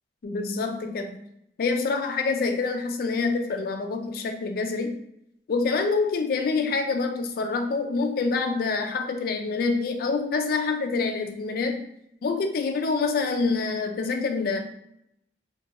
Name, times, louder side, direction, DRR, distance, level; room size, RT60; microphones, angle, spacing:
voice 1, 0.2-1.2 1.6-5.0 5.5-11.9 12.2-14.6, left 4 dB, 55° left, 5 dB, 0.3 m, -26 dB
2.4 x 2.2 x 2.8 m, 0.74 s
head